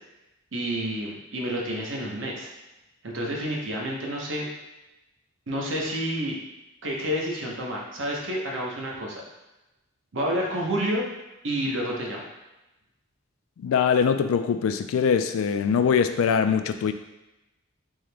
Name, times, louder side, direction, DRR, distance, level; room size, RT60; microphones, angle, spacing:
voice 1, 0.5-2.5 3.0-4.5 5.5-6.4 6.8-9.2 10.1-11.1 11.4-12.3, equal, 70° right, -2 dB, 0.8 m, -29 dB
voice 2, 13.6-16.9, left 6 dB, 85° left, 10 dB, 0.3 m, -22 dB
3.6 x 2.9 x 3.3 m, 0.98 s
head